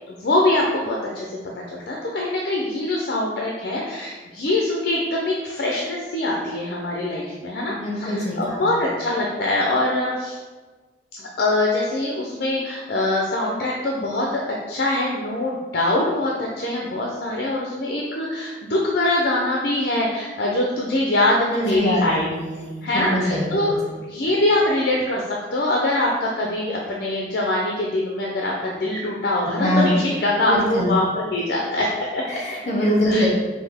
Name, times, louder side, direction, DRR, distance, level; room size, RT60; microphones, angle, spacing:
voice 1, 0.1-1.4 1.7-10.4 11.2-14.4 14.7-22.3 22.8-23.8 24.1-32.2 33.1-33.3, left 1 dB, 55° left, -2 dB, 0.5 m, -23 dB
voice 2, 7.7-8.6 21.5-23.6 29.5-30.0 30.5-30.9 32.3-33.3, equal, 40° left, -4 dB, 1.4 m, -23 dB
5.4 x 2.6 x 3.5 m, 1.3 s
head